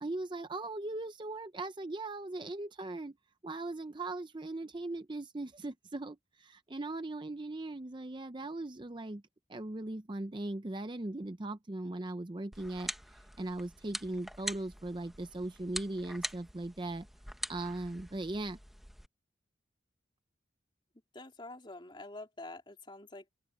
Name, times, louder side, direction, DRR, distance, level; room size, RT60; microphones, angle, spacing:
voice 1, 0.0-3.2 3.4-9.2 9.5-12.9 13.4-17.1 17.5-18.6, right 2 dB, 25° right, 0.6 m, -39 dB
sound 1, 12.5-19.1, equal, ahead, 1.1 m, -44 dB
voice 2, 21.1-23.3, left 2 dB, 25° left, 3.4 m, -47 dB
open air
head